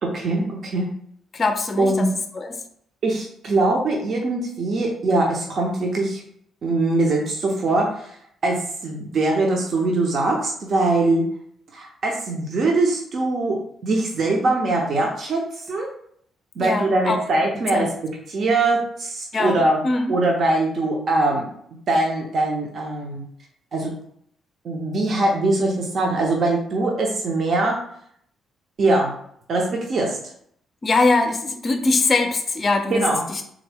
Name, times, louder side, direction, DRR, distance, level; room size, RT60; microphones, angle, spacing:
voice 1, 0.0-0.9 1.8-2.1 3.0-6.2 6.6-8.1 8.4-11.3 11.7-15.4 15.7-15.9 16.6-17.9 18.3-19.8 20.1-21.5 21.9-23.2 23.7-23.9 24.6-27.8 28.8-29.1 29.5-30.2 32.9-33.2, right 2 dB, 55° right, -1 dB, 0.7 m, -22 dB
voice 2, 1.3-2.6 16.6-17.2 17.7-17.9 19.3-20.1 30.8-33.4, left 3 dB, 35° left, 5 dB, 0.4 m, -22 dB
3.6 x 2.1 x 3.4 m, 0.67 s
cardioid pair, 90°, 0 cm